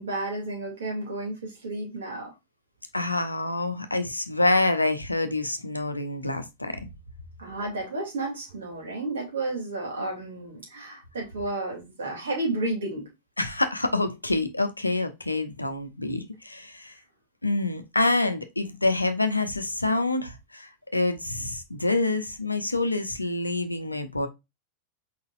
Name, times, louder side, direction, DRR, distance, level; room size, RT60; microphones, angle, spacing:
voice 1, 0.0-2.3 7.4-13.1, right 2 dB, 65° right, 2.8 m, -32 dB
voice 2, 2.9-6.9 13.4-17.0 17.4-24.3, left 2 dB, 85° left, 0.7 m, -27 dB
4.6 x 4.0 x 2.5 m
figure-of-eight pair, 90°, 0 cm